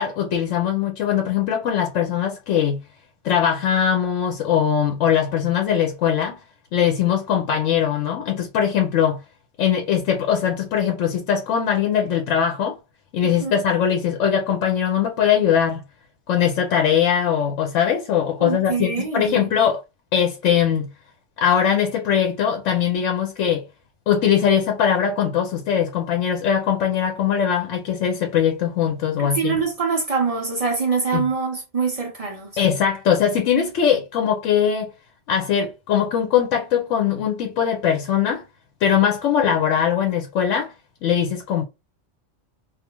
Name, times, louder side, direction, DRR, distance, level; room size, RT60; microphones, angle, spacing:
voice 1, 0.0-2.8 3.2-6.4 6.7-9.2 9.6-12.8 13.1-15.8 16.3-19.8 20.1-20.9 21.4-23.6 24.1-29.6 31.1-31.2 32.6-34.9 35.3-38.4 38.8-40.7 41.0-41.6, left 8 dB, 80° left, 0.9 m, -21 dB
voice 2, 13.2-13.5 18.4-19.5 29.2-32.5 39.4-39.5, right 5 dB, 45° right, 0.5 m, -24 dB
2.4 x 2.3 x 2.9 m
omnidirectional pair, 1.3 m